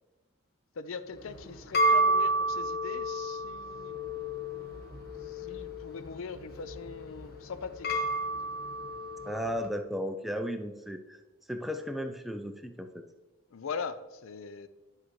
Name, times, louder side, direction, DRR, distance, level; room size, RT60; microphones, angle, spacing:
voice 1, 0.8-4.0 5.3-8.0 8.3-8.5 13.5-14.7, left 5 dB, 70° left, 13 dB, 0.5 m, -41 dB
sound 1, 1.1-9.6, right 1 dB, 45° left, 1.0 m, -31 dB
voice 2, 9.3-11.2 11.5-13.0, equal, ahead, 6 dB, 0.4 m, -35 dB
10.0 x 5.6 x 3.1 m, 1.2 s
head